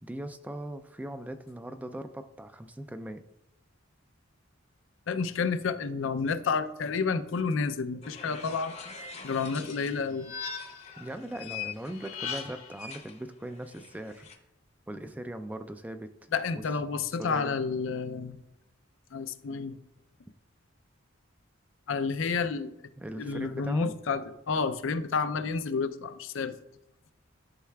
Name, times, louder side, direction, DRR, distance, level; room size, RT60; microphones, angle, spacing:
voice 1, 0.0-3.2 11.0-14.2 14.9-16.1 16.6-16.7 17.1-17.6 23.0-23.9, right 1 dB, 10° right, 9 dB, 0.3 m, -39 dB
voice 2, 5.1-8.8 9.2-10.3 16.3-18.4 19.1-19.8 21.9-22.7 23.2-26.6, left 5 dB, 70° left, 11 dB, 0.5 m, -30 dB
sound 1, 8.0-10.1 10.5-14.4, left 7 dB, 35° left, 0.7 m, -44 dB
sound 2, 9.7-11.0 11.9-12.8, left 6 dB, 90° left, 1.6 m, -39 dB
11.5 x 5.5 x 2.3 m, 0.89 s
head